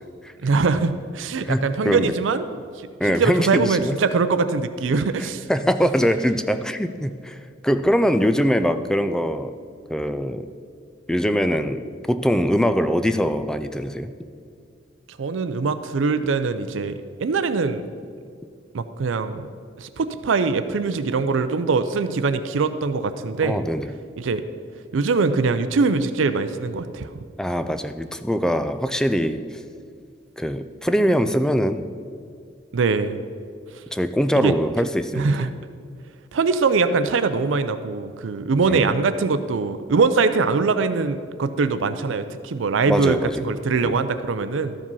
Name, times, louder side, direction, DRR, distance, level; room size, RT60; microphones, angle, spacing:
voice 1, 0.4-2.4 2.8-2.9 3.2-5.5 15.2-17.9 18.7-19.5 19.8-23.6 24.2-24.4 24.9-27.1 32.7-33.2 34.3-34.5 35.2-35.5 36.3-44.8, right 4 dB, 75° right, 11 dB, 0.5 m, -22 dB
voice 2, 1.4-2.1 3.0-4.0 5.2-7.4 7.6-9.5 9.9-10.5 11.1-14.1 23.4-23.9 27.4-29.4 30.4-31.9 33.9-35.3 38.7-38.8 42.9-43.5 43.8-44.0, equal, 5° left, 10 dB, 0.3 m, -22 dB
13.0 x 5.1 x 5.4 m, 2.2 s
head